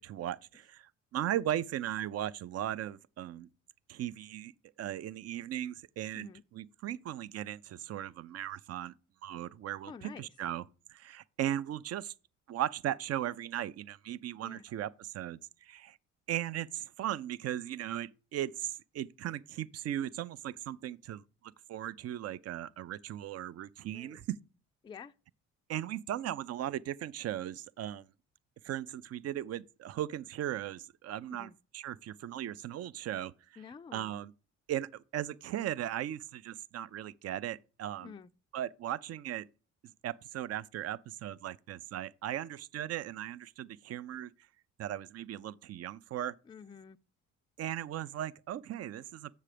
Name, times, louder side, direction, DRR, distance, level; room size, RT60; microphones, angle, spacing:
voice 1, 0.0-3.5 3.9-4.5 4.8-8.9 9.2-10.6 10.9-12.1 12.5-16.0 16.3-24.4 25.7-28.1 28.6-33.6 33.9-34.3 34.7-38.1 38.5-39.5 39.8-44.3 44.8-46.4 47.6-49.4, right 12 dB, 55° right, 0.5 m, -37 dB
voice 2, 9.9-10.3 14.4-14.6 23.9-24.2 24.8-25.1 31.3-31.5 33.6-34.2 38.0-38.3 46.5-47.0, left 6 dB, 15° left, 0.3 m, -49 dB
7.3 x 6.7 x 5.0 m
cardioid pair, 90°, 30 cm